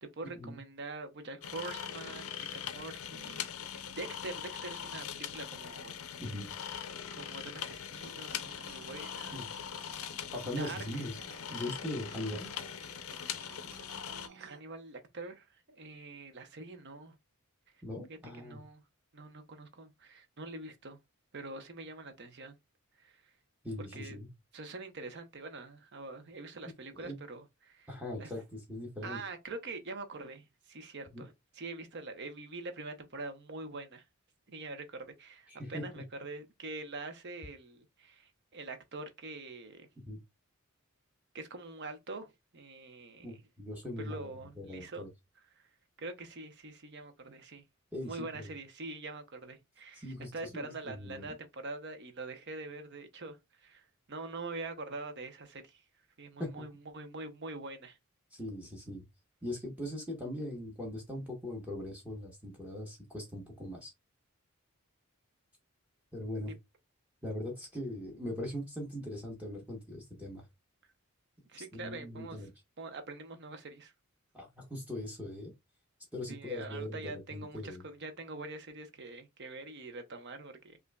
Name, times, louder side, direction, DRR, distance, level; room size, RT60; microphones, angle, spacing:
voice 1, 0.0-5.9 7.1-9.4 10.6-10.8 13.2-13.4 14.3-17.1 18.1-18.8 19.1-21.0 21.3-22.6 23.0-23.2 23.8-24.2 24.5-27.9 28.2-28.3 29.0-34.0 34.5-39.9 41.3-43.4 44.0-45.1 45.6-45.7 46.0-47.6 48.0-50.1 50.3-55.8 56.2-58.0 71.5-72.4 72.8-73.9 76.3-80.8, right 3 dB, 55° right, 0.8 m, -44 dB
sound 1, 1.4-14.3, left 9 dB, 75° left, 0.5 m, -41 dB
voice 2, 6.2-6.5 9.3-9.5 10.3-11.2 11.5-12.5 17.8-18.6 23.6-24.3 26.9-27.2 27.9-29.2 31.1-31.2 35.5-36.0 40.1-40.2 43.2-44.3 44.6-45.1 47.9-48.5 49.9-51.3 56.4-56.5 58.3-59.0 59.4-63.9 66.1-66.5 67.2-70.5 71.6-72.5 74.3-75.5 76.1-77.8, left 1 dB, 5° right, 0.9 m, -40 dB
sound 2, 8.0-14.6, right 6 dB, 85° right, 0.7 m, -55 dB
5.4 x 2.6 x 2.2 m
head